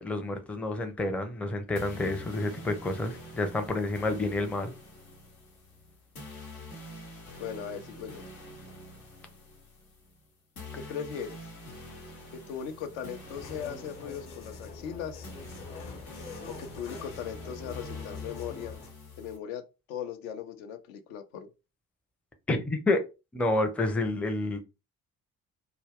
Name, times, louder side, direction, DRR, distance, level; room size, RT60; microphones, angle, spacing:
voice 1, 0.0-4.7 22.5-23.0 23.3-24.6, left 2 dB, 5° left, 0.4 m, -29 dB
sound 1, 1.8-19.4, left 1 dB, 85° left, 0.9 m, -46 dB
voice 2, 7.4-8.2 10.8-11.4 12.3-15.3 16.4-18.8 19.2-19.6 19.9-21.5, left 8 dB, 65° left, 0.6 m, -38 dB
sound 2, 13.3-18.9, left 4 dB, 50° left, 0.9 m, -44 dB
2.2 x 2.0 x 3.4 m
figure-of-eight pair, 45°, 42 cm